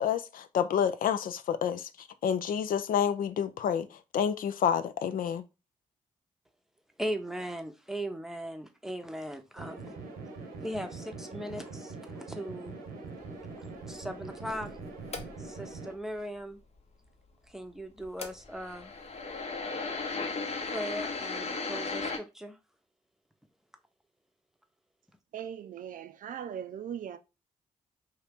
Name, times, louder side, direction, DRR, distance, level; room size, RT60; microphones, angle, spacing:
voice 1, 0.0-1.9 2.2-3.9 4.1-5.4, left 8 dB, 65° left, 0.4 m, -28 dB
voice 2, 7.0-9.9 10.6-12.8 13.9-14.8 15.4-16.6 17.5-18.9 20.7-22.6, equal, 5° right, 0.7 m, -38 dB
sound 1, 9.6-15.9, right 3 dB, 85° right, 0.9 m, -43 dB
sound 2, 13.2-15.7 18.0-22.2, left 4 dB, 45° left, 0.8 m, -36 dB
voice 3, 25.3-27.2, right 9 dB, 60° right, 0.5 m, -39 dB
2.8 x 2.8 x 3.5 m
hypercardioid pair, 45°, 16 cm